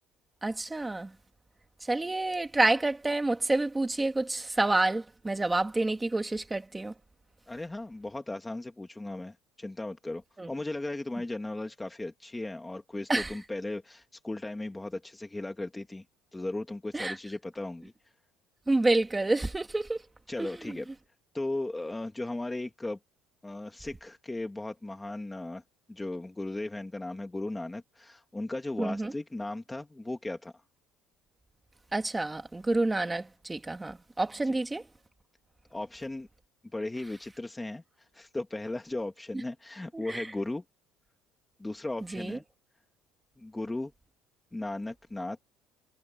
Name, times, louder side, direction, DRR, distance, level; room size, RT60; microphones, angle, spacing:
voice 1, 0.4-1.1 1.8-6.9 10.4-10.5 13.1-13.3 16.9-17.2 18.7-20.0 20.4-20.8 28.8-29.1 31.9-34.8 39.9-40.3 42.1-42.4, right 2 dB, 10° right, 1.6 m, -28 dB
voice 2, 7.5-16.0 16.3-17.9 20.3-20.9 21.3-23.0 23.4-25.6 25.9-30.6 34.4-34.5 35.7-36.3 36.7-40.6 41.6-42.4 43.4-43.9 44.5-45.4, left 2 dB, 5° left, 1.3 m, -36 dB
cardioid pair, 175°, 0 cm